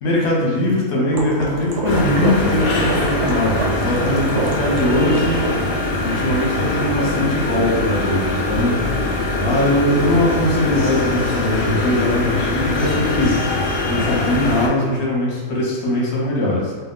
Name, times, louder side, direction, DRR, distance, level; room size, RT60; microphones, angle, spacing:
voice 1, 0.0-5.4 6.0-8.8 9.3-13.4 13.9-16.7, left 1 dB, 55° left, -4 dB, 0.9 m, -20 dB
sound 1, 1.1-5.5, right 3 dB, 65° right, 0.7 m, -26 dB
sound 2, 1.8-14.7, left 2 dB, 85° left, 0.5 m, -22 dB
2.4 x 2.2 x 3.6 m, 1.5 s
omnidirectional pair, 1.5 m